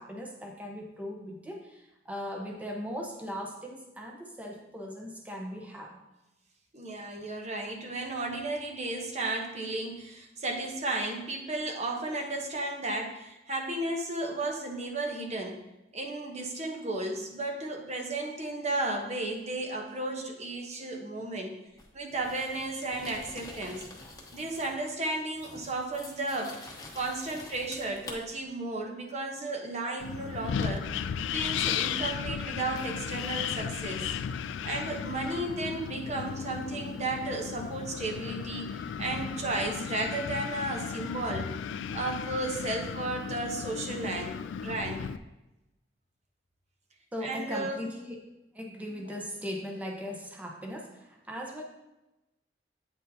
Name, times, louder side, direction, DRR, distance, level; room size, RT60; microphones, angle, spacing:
voice 1, 0.0-6.0 47.1-48.2 48.5-51.6, equal, 10° right, -1 dB, 0.8 m, -39 dB
voice 2, 6.7-15.6 15.9-21.6 21.9-23.8 24.3-30.9 31.3-34.1 34.6-41.5 41.9-45.1 47.2-47.8, right 2 dB, 40° right, 2 dB, 1.0 m, -34 dB
sound 1, 21.8-24.8 25.1-28.2 31.4-31.5 32.7-33.5, left 2 dB, 20° left, 1.0 m, -47 dB
Wind, 30.0-45.2, left 7 dB, 90° left, 0.3 m, -35 dB
8.7 x 6.3 x 2.8 m, 0.98 s
head